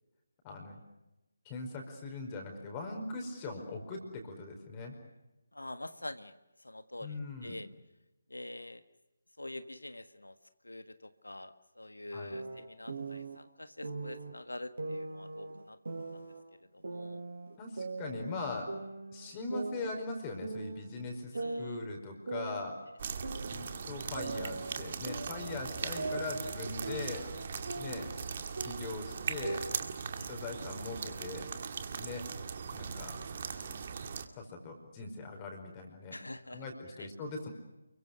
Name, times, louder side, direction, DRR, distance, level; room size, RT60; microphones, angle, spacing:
voice 1, 0.4-0.8 1.5-5.0 7.0-7.6 12.1-12.4 17.6-18.7 19.1-22.8 23.5-27.3 27.8-28.1 28.6-29.6 30.3-31.5 32.0-32.2 32.7-33.2 34.4-36.2 36.5-37.5, left 3 dB, 20° left, 3 dB, 5.1 m, -41 dB
voice 2, 5.5-6.3 6.6-7.7 8.3-8.8 9.4-10.4 10.6-15.8 16.1-16.2 16.7-17.2 21.3-21.9 23.3-23.5 30.2-30.3 36.1-36.6 36.9-37.1, left 1 dB, 75° left, 10 dB, 1.5 m, -46 dB
sound 1, 12.3-13.4 13.8-14.3 14.8-16.4 16.8-18.4 18.7-20.2 20.4-20.9 21.3-23.8 24.1-28.3 28.6-29.9, right 3 dB, 60° right, 5.3 m, -41 dB
sound 2, 23.0-34.2, right 6 dB, 40° right, 2.3 m, -40 dB
30.0 x 23.5 x 6.6 m, 1.0 s
figure-of-eight pair, 150°, 0 cm